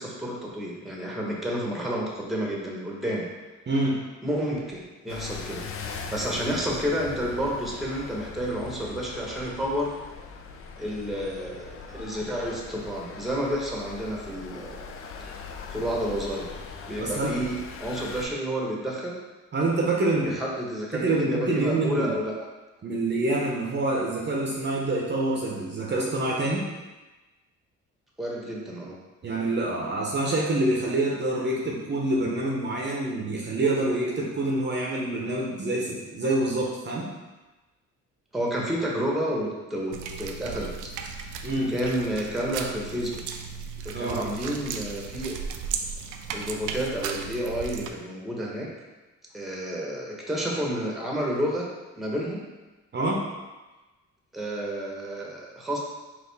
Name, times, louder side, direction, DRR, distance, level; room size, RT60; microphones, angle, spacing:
voice 1, 0.0-3.3 4.2-5.6 6.1-9.9 10.8-14.7 15.2-15.3 15.7-16.5 16.9-19.1 20.2-22.3 28.2-28.9 38.3-41.3 41.7-43.1 43.8-45.3 46.3-48.7 49.3-51.7 52.0-52.4 54.3-55.8, equal, ahead, -3 dB, 1.0 m, -30 dB
voice 2, 3.7-4.0 17.0-17.4 19.5-20.4 20.9-22.1 22.8-26.6 29.2-37.1 41.4-41.7 43.9-44.2 52.9-53.2, right 2 dB, 35° right, -3 dB, 0.7 m, -26 dB
sound 1, 5.1-18.3, left 5 dB, 50° left, 0.5 m, -40 dB
sound 2, 39.9-47.9, right 6 dB, 80° right, 0.5 m, -36 dB
4.2 x 2.5 x 3.9 m, 1.2 s
cardioid pair, 90°, 30 cm